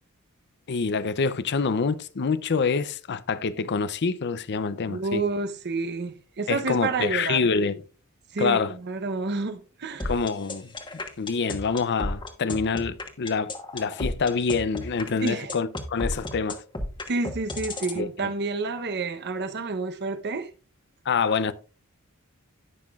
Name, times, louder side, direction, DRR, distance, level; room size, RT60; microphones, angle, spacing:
voice 1, 0.7-5.2 6.5-7.8 8.4-8.7 10.0-10.7 11.2-16.6 18.0-18.3 21.1-21.5, left 5 dB, 50° left, 0.5 m, -26 dB
voice 2, 4.8-7.5 8.3-10.1 15.2-15.5 17.1-20.5, right 3 dB, 50° right, 0.9 m, -29 dB
sound 1, 10.0-18.0, left 1 dB, 20° left, 1.2 m, -32 dB
17.5 x 5.8 x 2.4 m
head